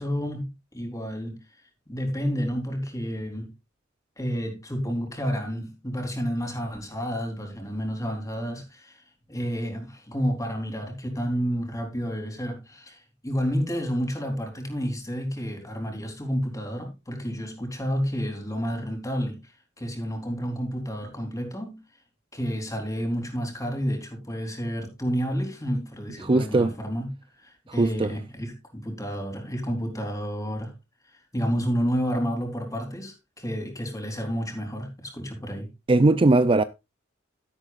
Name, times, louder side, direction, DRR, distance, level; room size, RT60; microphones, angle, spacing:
voice 1, 0.0-1.4 1.9-3.5 4.2-9.0 9.3-19.4 19.8-21.8 22.3-30.7 31.3-35.7, equal, 15° left, 3.8 m, -30 dB
voice 2, 26.2-26.7 27.8-28.1 35.9-36.6, right 2 dB, 25° right, 0.4 m, -19 dB
12.5 x 11.5 x 2.5 m
head